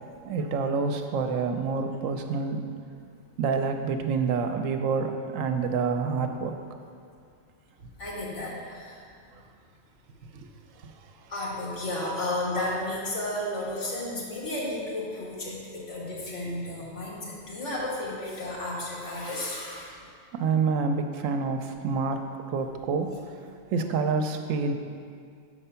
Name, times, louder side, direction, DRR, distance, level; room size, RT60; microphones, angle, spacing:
voice 1, 0.2-2.7 3.4-6.5 10.8-10.9 20.3-23.4 23.7-24.7, right 5 dB, 85° right, 6 dB, 1.0 m, -27 dB
voice 2, 8.0-9.0 11.3-19.9, left 1 dB, 65° left, -5 dB, 1.9 m, -33 dB
6.6 x 4.8 x 5.6 m, 2.3 s
omnidirectional pair, 1.3 m